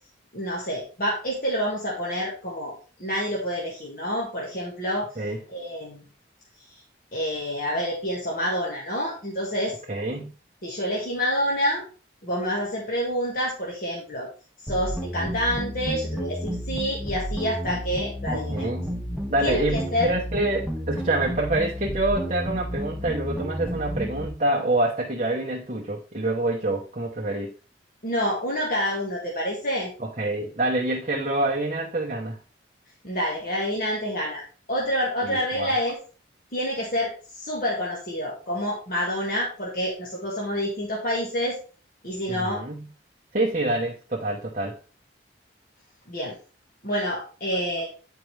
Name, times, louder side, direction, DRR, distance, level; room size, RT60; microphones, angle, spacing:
voice 1, 0.3-2.7 3.0-5.1 5.5-6.0 7.1-9.7 10.6-11.8 12.2-14.3 14.6-18.7 19.4-20.1 28.0-29.9 33.0-34.4 34.7-36.0 36.5-41.6 42.0-42.6 46.1-46.4 46.8-47.9, equal, 45° left, -4 dB, 1.6 m, -28 dB
voice 2, 9.9-10.3 18.3-18.9 19.3-27.5 30.0-32.4 35.2-35.7 42.3-42.9 43.3-44.8 47.5-47.6, right 2 dB, 35° right, -4 dB, 0.9 m, -26 dB
sound 1, 14.7-24.3, equal, ahead, 0.6 m, -31 dB
9.1 x 4.6 x 3.3 m, 0.36 s
head